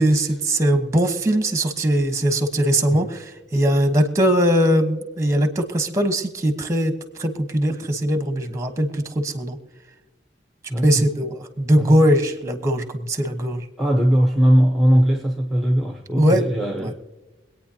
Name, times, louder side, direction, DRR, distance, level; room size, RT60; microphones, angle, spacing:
voice 1, 0.0-6.9 7.2-9.6 10.8-13.6 16.2-16.4 16.8-16.9, right 1 dB, 15° right, 8 dB, 1.2 m, -20 dB
voice 2, 10.7-11.1 11.8-12.0 13.8-16.9, equal, ahead, 1 dB, 0.8 m, -19 dB
24.5 x 9.0 x 2.9 m, 1.2 s
head